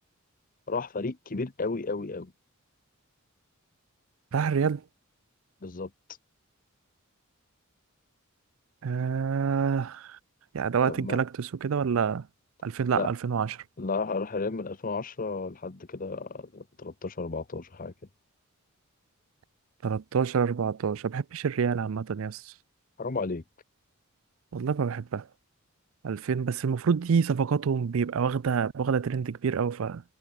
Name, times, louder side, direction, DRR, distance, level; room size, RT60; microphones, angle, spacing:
voice 1, 0.7-2.3 5.6-5.9 10.8-11.2 12.9-13.1 13.8-17.9 23.0-23.4, left 3 dB, 40° left, 0.9 m, -33 dB
voice 2, 4.3-4.8 8.8-10.2 10.5-12.3 12.6-13.5 19.8-22.5 24.5-25.2 26.0-30.0, right 6 dB, 70° right, 0.4 m, -27 dB
head